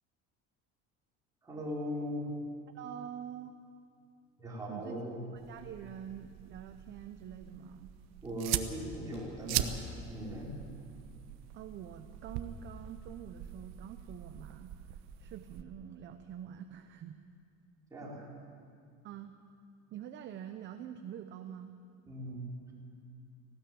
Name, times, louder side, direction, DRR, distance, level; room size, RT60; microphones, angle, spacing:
voice 1, 1.4-2.3 4.4-5.2 8.2-9.8 10.1-10.5 17.9-18.3 22.1-22.7, equal, 10° right, -5 dB, 4.6 m, -39 dB
voice 2, 2.7-3.5 4.7-5.0 5.3-7.9 11.5-14.8 15.2-17.2 19.0-19.3 19.9-21.7, right 9 dB, 35° right, 7 dB, 0.8 m, -46 dB
sound 1, 5.4-15.6, right 11 dB, 60° right, 1.1 m, -41 dB
sound 2, 5.9-6.6 9.0-11.0, equal, 20° left, 5.3 m, -60 dB
19.0 x 16.0 x 8.9 m, 2.4 s
cardioid pair, 165°, 30 cm